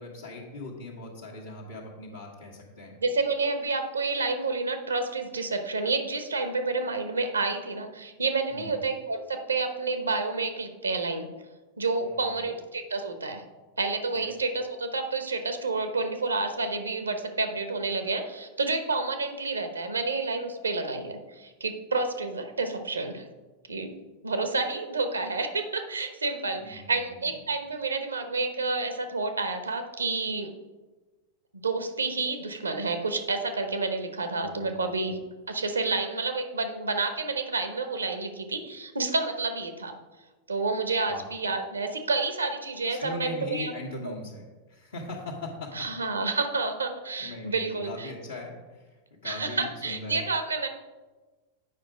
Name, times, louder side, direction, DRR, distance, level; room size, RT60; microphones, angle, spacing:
voice 1, 0.0-2.9 8.5-8.8 12.0-12.5 14.1-14.3 26.6-27.3 34.4-34.9 41.1-41.2 42.9-45.7 47.2-50.2, left 2 dB, 65° left, -5 dB, 1.4 m, -40 dB
voice 2, 3.0-11.3 11.8-13.4 13.8-23.2 23.7-23.9 24.2-30.5 31.6-35.2 35.5-39.9 40.5-43.7 44.0-44.1 45.7-48.1 49.2-50.7, right 3 dB, 75° right, 7 dB, 0.9 m, -29 dB
8.6 x 5.3 x 5.0 m, 1.2 s
figure-of-eight pair, 90°, 0 cm